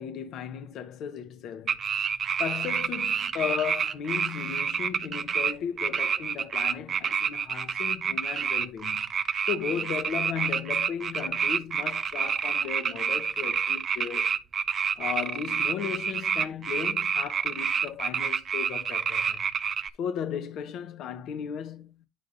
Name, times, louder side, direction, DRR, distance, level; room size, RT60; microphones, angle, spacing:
voice 1, 0.0-1.8 2.4-9.1 9.5-14.3 15.0-19.5 20.0-21.9, left 8 dB, 65° left, 0.7 m, -35 dB
sound 1, 1.7-5.5 5.8-19.9, right 7 dB, 45° right, 0.5 m, -28 dB
9.1 x 5.2 x 2.5 m
supercardioid pair, 80°, 0 cm